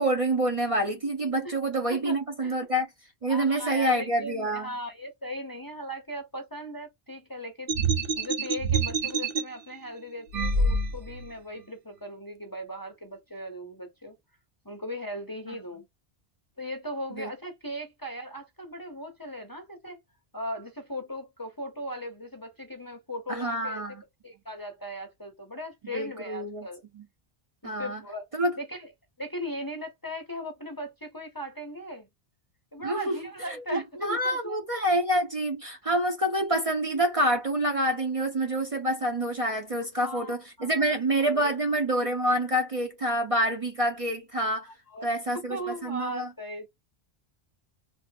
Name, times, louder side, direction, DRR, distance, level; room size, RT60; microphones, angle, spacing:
voice 1, 0.0-2.9 3.2-4.7 17.1-17.3 23.3-24.0 25.9-26.7 26.9-27.0 27.6-28.0 28.3-28.5 32.8-33.2 33.5-44.7 45.0-46.3, right 1 dB, 35° right, 0.7 m, -27 dB
voice 2, 1.9-2.6 3.3-7.7 8.1-14.2 14.6-15.8 16.6-20.0 20.3-23.8 24.2-26.8 27.6-28.3 28.6-28.9 29.2-32.1 32.7-34.6 40.0-41.5 44.9-45.1 45.3-46.7, equal, 25° left, 0.7 m, -38 dB
sound 1, 7.7-9.4 10.3-11.2, right 3 dB, 60° right, 0.9 m, -26 dB
3.4 x 2.5 x 2.6 m
omnidirectional pair, 1.1 m